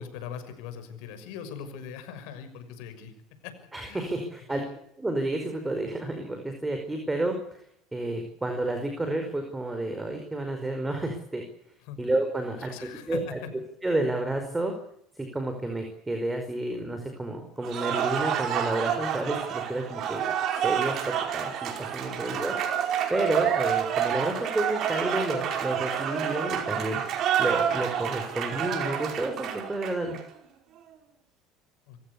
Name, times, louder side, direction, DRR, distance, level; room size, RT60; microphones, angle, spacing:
voice 1, 0.0-3.1 3.8-4.0 4.5-4.6 11.9-12.0 12.6-13.2 22.1-22.5 31.9-32.0, left 8 dB, 75° left, 9 dB, 6.3 m, -41 dB
voice 2, 3.7-4.6 5.0-7.4 7.9-11.4 12.0-13.4 13.8-14.7 15.1-20.3 20.6-22.5 23.1-27.0 27.4-30.2, right 2 dB, 10° right, 5 dB, 5.0 m, -30 dB
Cheering / Applause, 17.6-30.2, right 9 dB, 50° right, 5.0 m, -29 dB
27.0 x 16.0 x 8.4 m, 0.75 s
supercardioid pair, 110°, 0 cm